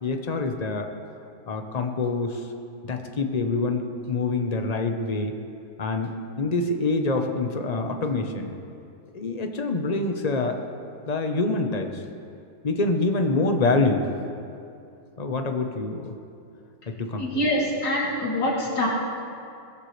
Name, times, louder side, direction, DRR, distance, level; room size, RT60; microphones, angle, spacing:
voice 1, 0.0-0.9 1.5-2.5 2.8-5.3 5.8-8.5 9.1-10.6 11.1-12.0 12.6-14.1 15.2-16.1 16.9-17.4, left 3 dB, 35° left, 4 dB, 0.6 m, -26 dB
voice 2, 17.2-18.9, left 1 dB, 55° left, -6 dB, 3.8 m, -25 dB
21.0 x 15.0 x 3.3 m, 2.5 s
omnidirectional pair, 2.2 m